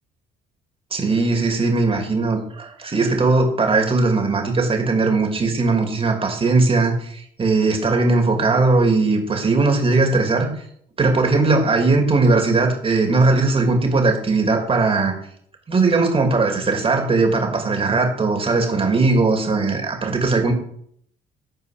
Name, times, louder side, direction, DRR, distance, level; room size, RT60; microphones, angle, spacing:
voice 1, 0.9-10.5 11.0-15.1 15.7-20.5, right 3 dB, 30° right, 3 dB, 2.8 m, -19 dB
9.7 x 4.5 x 6.6 m, 0.65 s
supercardioid pair, 80°, 17 cm